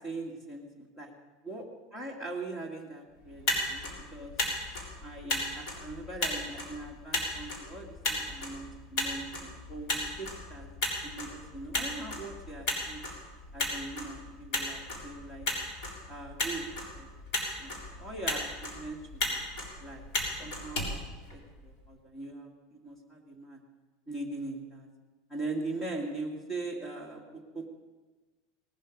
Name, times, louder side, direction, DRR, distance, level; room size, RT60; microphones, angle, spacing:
voice 1, 0.0-1.1 1.5-1.6 1.9-3.9 4.1-4.3 4.7-10.7 11.0-13.0 13.5-15.5 16.1-17.1 17.6-19.4 19.8-20.0 20.4-20.9 21.3-23.6 24.1-24.9 25.3-27.7, right 2 dB, 15° left, 2 dB, 2.1 m, -41 dB
Motor vehicle (road), 3.2-21.8, left 1 dB, 55° left, 4.0 m, -36 dB
18.5 x 12.0 x 5.3 m, 1.2 s
supercardioid pair, 150°, 0 cm